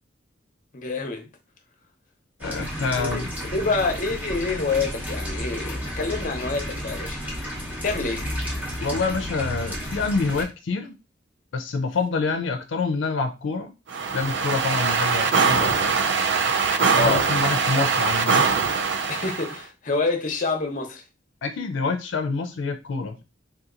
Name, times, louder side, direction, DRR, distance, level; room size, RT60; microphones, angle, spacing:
voice 1, 0.7-1.3 2.9-3.2 3.5-7.3 7.8-8.3 16.9-17.2 19.1-21.0, left 3 dB, 45° left, 0.7 m, -27 dB
voice 2, 2.4-3.3 8.8-10.9 11.5-13.7 14.1-15.9 16.9-18.5 21.4-23.2, left 4 dB, 80° left, 0.4 m, -27 dB
sound 1, 2.4-10.5, equal, 10° right, 0.7 m, -32 dB
sound 2, 13.9-19.6, right 5 dB, 70° right, 0.4 m, -22 dB
3.6 x 2.8 x 2.4 m
head